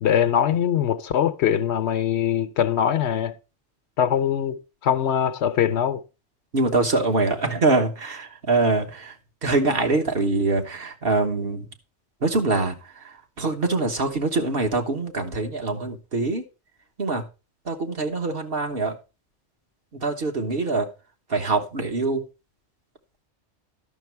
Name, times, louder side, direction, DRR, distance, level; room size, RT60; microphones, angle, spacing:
voice 1, 0.0-3.4 4.0-6.0, left 9 dB, 70° left, 1.0 m, -22 dB
voice 2, 6.5-9.1 9.4-11.7 12.2-12.7 13.0-16.4 17.0-17.2 17.7-19.0 20.0-20.9 21.3-22.2, right 3 dB, 55° right, 1.5 m, -24 dB
11.5 x 6.2 x 4.5 m
omnidirectional pair, 1.2 m